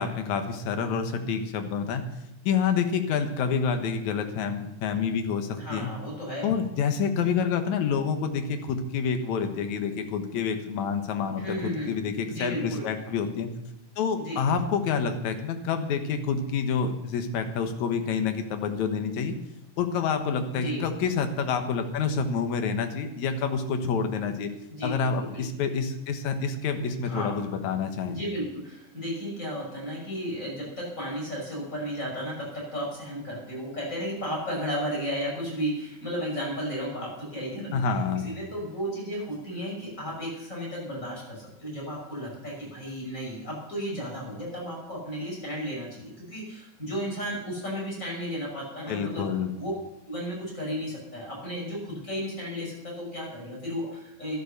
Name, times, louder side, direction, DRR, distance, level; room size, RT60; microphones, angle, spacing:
voice 1, 0.0-2.0 2.4-5.9 6.4-13.5 14.0-19.3 19.8-24.5 24.8-28.2 37.7-38.3 48.9-49.5, left 6 dB, 65° left, 6 dB, 2.4 m, -28 dB
voice 2, 5.6-6.5 11.4-11.9 12.3-12.9 14.2-14.4 20.5-20.8 24.7-25.4 26.9-27.4 28.1-38.0 38.2-49.2 49.6-49.7 50.1-54.4, equal, 20° left, -3 dB, 6.2 m, -34 dB
12.0 x 12.0 x 6.7 m, 0.87 s
omnidirectional pair, 3.9 m